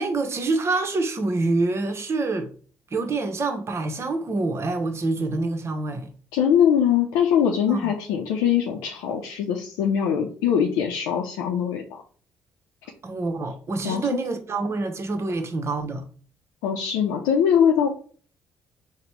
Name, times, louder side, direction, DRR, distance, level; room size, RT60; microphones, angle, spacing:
voice 1, 0.0-2.5 2.9-6.1 7.7-7.9 13.0-16.0, right 3 dB, 45° right, 0.9 m, -26 dB
voice 2, 6.3-12.0 13.8-14.1 16.6-17.9, left 8 dB, 85° left, 0.5 m, -22 dB
4.1 x 2.1 x 4.5 m
supercardioid pair, 55°, 7 cm